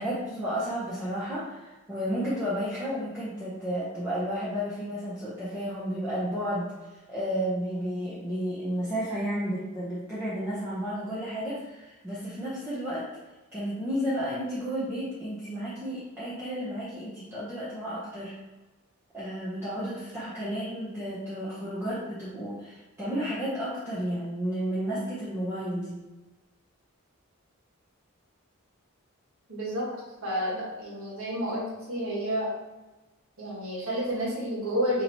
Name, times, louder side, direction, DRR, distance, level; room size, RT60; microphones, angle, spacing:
voice 1, 0.0-13.1 13.5-18.3 19.1-26.0, equal, 10° right, -10 dB, 0.7 m, -32 dB
voice 2, 29.5-29.9 30.2-32.5 33.4-35.0, equal, 65° right, -6 dB, 1.4 m, -30 dB
2.9 x 2.9 x 4.0 m, 1.1 s
head